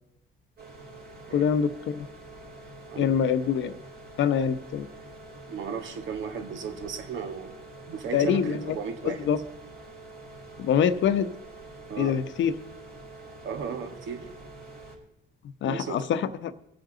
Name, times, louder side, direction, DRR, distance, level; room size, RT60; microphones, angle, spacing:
sound 1, 0.6-15.0, right 2 dB, 55° right, 4.6 m, -46 dB
voice 1, 1.3-2.1 3.0-3.7 4.2-4.9 8.1-8.8 9.0-9.4 10.6-11.3 12.0-12.5 15.6-16.5, left 8 dB, 70° left, 11 dB, 0.9 m, -25 dB
voice 2, 2.9-3.5 5.5-7.6 7.9-9.3 11.9-12.2 13.4-14.3 15.6-16.1, right 6 dB, 75° right, 7 dB, 1.5 m, -35 dB
21.0 x 7.7 x 3.9 m, 0.81 s
cardioid pair, 90°, 20 cm